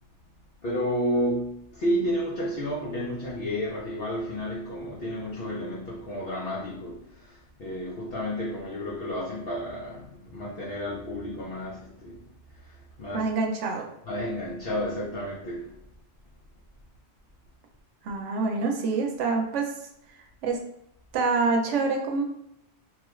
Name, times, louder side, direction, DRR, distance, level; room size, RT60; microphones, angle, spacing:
voice 1, 0.6-12.3 12.6-13.3 14.1-15.7, equal, 60° left, -6 dB, 0.8 m, -31 dB
voice 2, 13.1-13.9 18.0-19.8 20.4-20.6 21.1-22.2, right 4 dB, 80° right, 2 dB, 0.9 m, -26 dB
3.0 x 2.3 x 3.0 m, 0.80 s
omnidirectional pair, 1.2 m